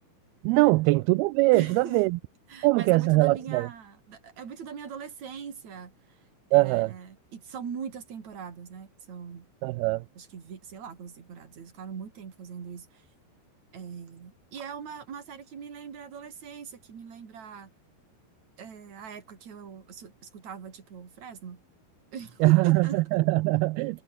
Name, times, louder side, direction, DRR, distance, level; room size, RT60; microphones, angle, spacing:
voice 1, 0.4-2.2 2.6-3.7 6.5-6.9 9.6-10.0 22.4-24.0, right 22 dB, 85° right, 2.5 m, -22 dB
voice 2, 1.5-2.0 2.5-6.2 6.5-9.5 10.2-13.1 13.7-17.7 18.6-21.6 22.1-23.0, right 7 dB, 50° right, 4.3 m, -41 dB
omnidirectional pair, 4.4 m